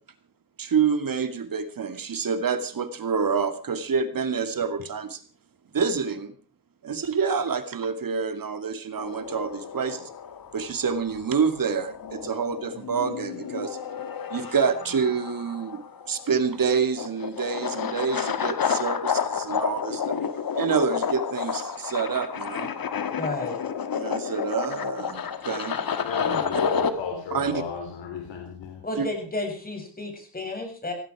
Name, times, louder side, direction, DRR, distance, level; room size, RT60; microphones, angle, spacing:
voice 1, 0.6-5.2 5.7-6.3 6.8-10.1 10.5-13.8 14.3-20.2 20.5-22.7 23.9-25.8 27.3-27.6 29.0-29.1, right 6 dB, 50° right, 10 dB, 2.5 m, -27 dB
sound 1, 9.0-26.9, left 7 dB, 50° left, 1.9 m, -30 dB
voice 2, 23.2-23.6 26.3-26.4 28.8-30.9, left 2 dB, 20° left, 4 dB, 7.7 m, -32 dB
voice 3, 26.0-28.9, left 6 dB, 85° left, 3 dB, 3.7 m, -34 dB
17.5 x 16.0 x 4.9 m, 0.40 s
cardioid pair, 90°, 43 cm